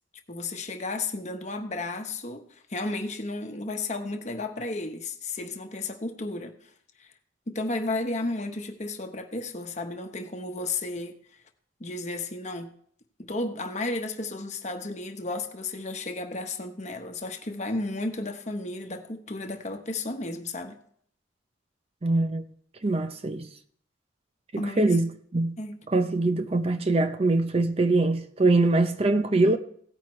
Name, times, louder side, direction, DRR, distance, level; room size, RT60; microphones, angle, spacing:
voice 1, 0.3-6.5 7.0-7.1 7.5-11.2 11.8-12.7 13.2-20.8 24.6-24.8 25.6-25.8 29.2-29.6, left 2 dB, 40° left, 1.1 m, -33 dB
voice 2, 22.0-22.4 22.8-23.5 24.5-25.6 25.9-29.6, right 2 dB, 30° right, 0.6 m, -23 dB
16.5 x 9.4 x 3.2 m
head